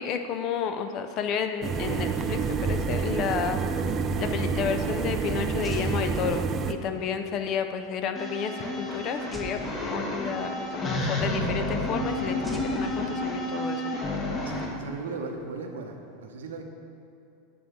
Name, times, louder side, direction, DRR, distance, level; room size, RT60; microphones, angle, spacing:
voice 1, 0.0-3.8 4.2-13.9, left 7 dB, 40° left, 7 dB, 0.5 m, -31 dB
sound 1, 1.6-6.7, right 5 dB, 30° right, 0.4 m, -28 dB
sound 2, 5.6-6.9 9.3-10.6 12.4-13.7, right 1 dB, 5° left, 0.8 m, -43 dB
sound 3, 8.1-14.6, left 1 dB, 25° left, 1.3 m, -30 dB
voice 2, 14.4-16.6, right 4 dB, 70° right, 3 dB, 0.8 m, -37 dB
9.2 x 3.9 x 6.2 m, 2.6 s
figure-of-eight pair, 85°, 0 cm